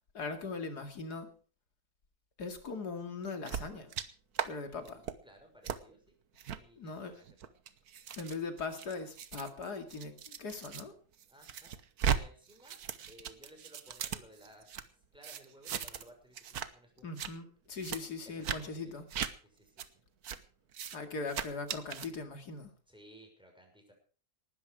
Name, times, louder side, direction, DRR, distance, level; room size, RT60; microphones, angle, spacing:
voice 1, 0.1-1.3 2.4-3.9 4.4-5.0 6.8-7.1 8.2-10.9 17.0-19.1 20.9-22.7, left 4 dB, 90° left, 6 dB, 2.9 m, -40 dB
sound 1, 3.5-4.1 4.3-4.5 4.9-5.1 5.6-5.8 6.4-6.6 7.3-10.8 11.2-12.2 12.5-14.8 15.2-16.1 16.3-16.7 17.0-17.3 17.8-18.0 18.4-18.6 19.1-19.3 19.8-19.9 20.2-20.4 20.7-21.0 21.3-22.1, right 8 dB, 70° right, 1.5 m, -37 dB
voice 2, 4.6-6.0 6.5-7.3 11.3-11.7 12.1-12.8 13.1-14.8 15.1-17.1 18.3-19.0 19.4-19.9 22.9-23.9, equal, 5° right, 2 dB, 6.0 m, -58 dB
19.5 x 12.5 x 4.9 m, 0.39 s
omnidirectional pair, 1.7 m